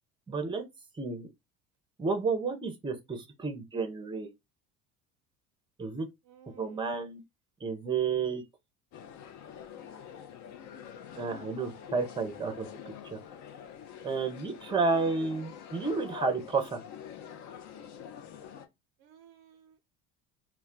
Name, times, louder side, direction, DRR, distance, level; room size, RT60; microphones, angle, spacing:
voice 1, 0.3-0.6 0.9-1.3 2.0-4.3 5.8-6.1 6.6-7.2 7.6-8.4 11.2-12.7 13.1-13.2 14.0-16.8, right 4 dB, 10° right, 0.6 m, -31 dB
voice 2, 6.3-7.0 15.2-15.3 19.0-19.8, right 9 dB, 50° right, 0.5 m, -55 dB
sound 1, 8.9-18.7, left 8 dB, 45° left, 0.5 m, -46 dB
2.2 x 2.2 x 3.6 m
hypercardioid pair, 70°, 42 cm